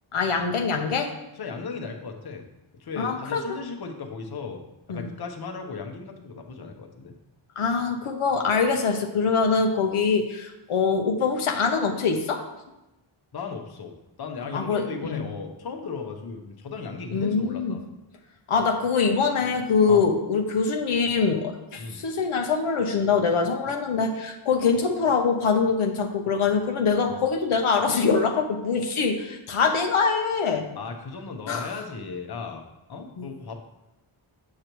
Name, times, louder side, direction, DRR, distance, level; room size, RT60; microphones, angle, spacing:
voice 1, 0.1-1.1 3.0-3.4 4.9-5.1 7.6-12.4 14.5-15.2 17.1-17.8 18.5-30.7 31.5-31.7, left 5 dB, 80° left, 3 dB, 0.9 m, -24 dB
voice 2, 1.4-2.4 2.7-4.6 4.9-7.1 13.3-17.8 19.9-20.1 21.8-22.0 27.1-27.2 30.8-32.6 32.9-33.6, left 4 dB, 50° left, 4 dB, 0.9 m, -36 dB
8.5 x 6.6 x 3.0 m, 0.95 s
wide cardioid pair, 135°, 49 cm